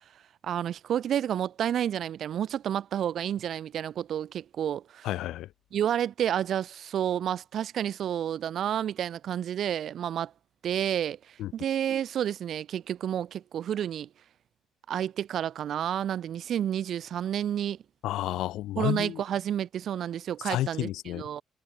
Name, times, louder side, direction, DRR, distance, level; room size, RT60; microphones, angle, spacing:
voice 1, 0.4-5.1 5.7-10.3 10.6-14.1 14.9-17.8 18.8-21.4, right 10 dB, 60° right, 0.8 m, -30 dB
voice 2, 5.0-5.5 11.4-11.5 18.0-19.2 20.5-21.2, left 14 dB, 70° left, 0.8 m, -31 dB
hypercardioid pair, 50°, 0 cm